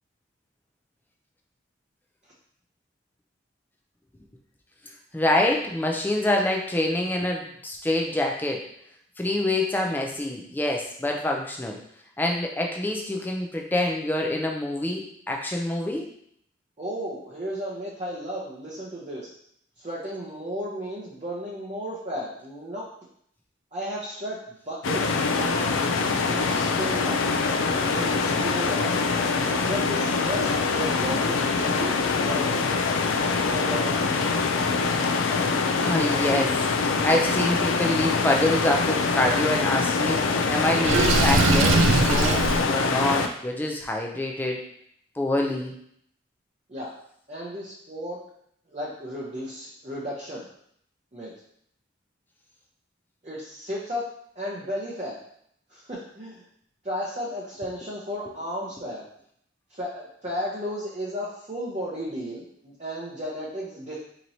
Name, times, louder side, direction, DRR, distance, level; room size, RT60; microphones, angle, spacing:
voice 1, 5.1-8.6 9.2-11.8 12.2-16.1 35.8-41.8 42.0-44.6 45.2-45.8, left 1 dB, 10° left, 0 dB, 0.4 m, -26 dB
voice 2, 16.8-19.3 19.8-22.8 23.7-25.7 26.2-29.1 29.7-32.8 33.5-34.1 46.7-46.9 47.3-48.2 48.7-50.5 51.1-51.3 53.2-54.1 54.4-55.2 55.7-56.4 56.8-59.0 59.7-64.0, equal, 35° right, -7 dB, 0.7 m, -34 dB
sound 1, 24.8-43.3, left 4 dB, 75° left, 0.4 m, -24 dB
Water / Sink (filling or washing), 40.8-42.6, right 3 dB, 80° right, 0.4 m, -20 dB
4.4 x 2.9 x 2.7 m, 0.68 s
head